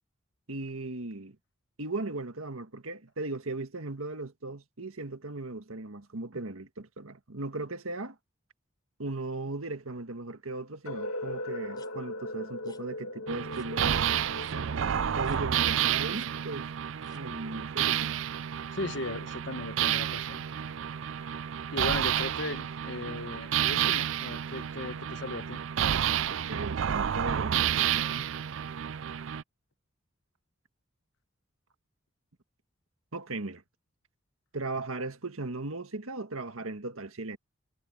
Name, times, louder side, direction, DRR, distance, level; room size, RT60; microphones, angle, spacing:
voice 1, 0.5-1.4 1.8-8.2 9.0-14.1 15.2-16.7 17.1-18.2 26.3-28.3 33.1-33.6 34.5-37.4, right 2 dB, 90° right, 1.8 m, -37 dB
sound 1, 10.9-16.7, left 1 dB, 90° left, 2.3 m, -40 dB
sound 2, 11.7-11.9 12.6-12.8 13.5-13.7 14.4-14.6 15.2-15.4 16.1-16.3 17.0-17.2 17.9-18.1, left 5 dB, 20° left, 3.8 m, -59 dB
sound 3, 13.3-29.4, right 9 dB, 65° right, 0.4 m, -30 dB
voice 2, 18.7-20.4 21.2-21.5 21.7-25.6, left 2 dB, 60° left, 1.2 m, -37 dB
head